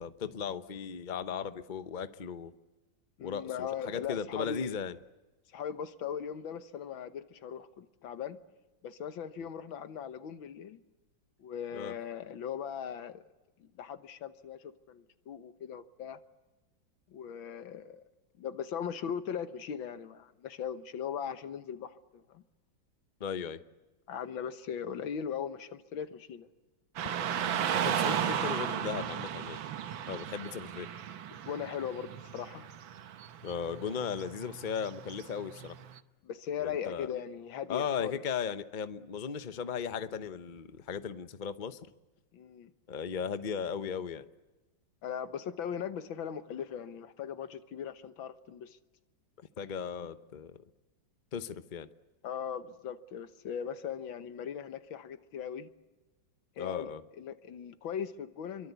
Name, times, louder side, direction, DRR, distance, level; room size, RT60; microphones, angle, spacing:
voice 1, 0.0-2.5 3.2-5.0 11.7-11.9 23.2-23.6 27.8-29.6 30.1-30.9 33.4-35.8 36.6-37.1 37.7-41.8 42.9-44.2 49.4-50.6 51.3-51.9 56.6-57.0, left 7 dB, 35° left, 0.8 m, -36 dB
voice 2, 3.2-4.7 5.5-8.4 8.8-10.8 11.4-13.2 13.6-16.2 17.1-18.0 18.4-22.4 24.1-26.5 31.3-32.7 36.2-38.2 42.3-42.7 45.0-48.8 52.2-55.7 56.6-56.9 57.2-58.7, left 8 dB, 90° left, 2.0 m, -39 dB
Car passing by / Traffic noise roadway noise, 27.0-36.0, right 9 dB, 85° right, 1.8 m, -35 dB
27.0 x 23.5 x 8.3 m
omnidirectional pair, 2.1 m